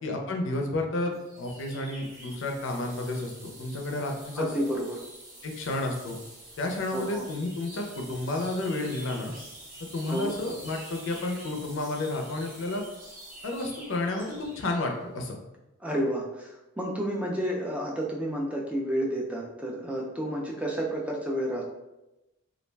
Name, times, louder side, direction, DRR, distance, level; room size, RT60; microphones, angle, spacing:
voice 1, 0.0-4.5 5.4-6.2 6.6-9.3 9.9-12.8 13.4-15.4, left 2 dB, 60° left, 2 dB, 0.4 m, -31 dB
sound 1, 1.1-15.0, right 1 dB, 40° right, 0.7 m, -47 dB
voice 2, 4.4-5.0 6.9-7.2 10.1-10.3 15.8-21.6, equal, 5° right, -2 dB, 0.3 m, -30 dB
2.3 x 2.1 x 3.2 m, 0.96 s
head